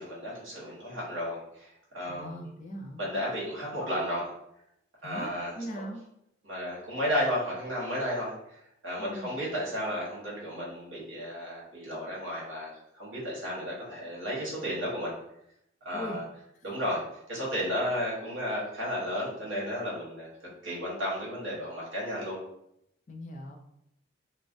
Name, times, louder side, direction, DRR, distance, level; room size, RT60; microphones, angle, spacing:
voice 1, 0.0-2.4 3.0-4.3 5.0-5.5 6.4-8.6 8.8-15.1 15.8-16.2 16.6-17.0 17.3-20.3 20.6-22.4, equal, 85° right, -5 dB, 1.1 m, -33 dB
voice 2, 2.1-3.0 5.0-6.0 9.0-9.4 15.9-16.2 23.1-23.6, equal, 40° left, 0 dB, 0.4 m, -40 dB
2.3 x 2.1 x 2.5 m, 0.78 s
head